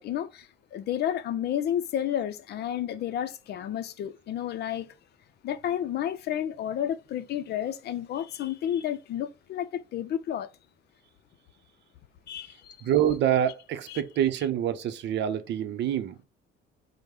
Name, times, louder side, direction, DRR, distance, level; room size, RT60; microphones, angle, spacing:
voice 1, 0.0-4.9 5.4-10.5 12.3-12.9 13.9-14.0, left 10 dB, 55° left, 0.5 m, -31 dB
voice 2, 12.8-16.2, right 10 dB, 60° right, 0.7 m, -26 dB
5.2 x 2.1 x 4.7 m
cardioid pair, 165°, 20 cm